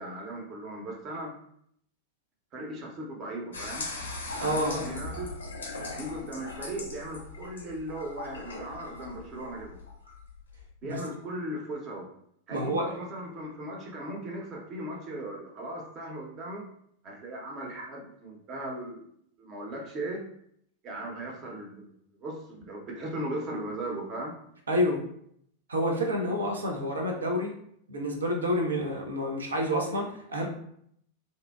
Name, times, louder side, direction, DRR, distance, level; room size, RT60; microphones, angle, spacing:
voice 1, 0.0-1.3 2.5-3.9 4.3-5.3 5.9-9.8 10.8-12.1 12.5-16.7 17.0-19.1 19.4-20.2 20.8-24.4, right 1 dB, 30° right, -1 dB, 0.7 m, -37 dB
sound 1, 3.5-10.7, left 3 dB, 70° left, 0.4 m, -39 dB
voice 2, 4.4-4.8 10.8-11.0 12.5-12.9 24.7-25.0 25.7-27.6 27.9-30.5, equal, 70° right, 1 dB, 0.5 m, -28 dB
2.6 x 2.1 x 2.2 m, 0.69 s
figure-of-eight pair, 90°, 0 cm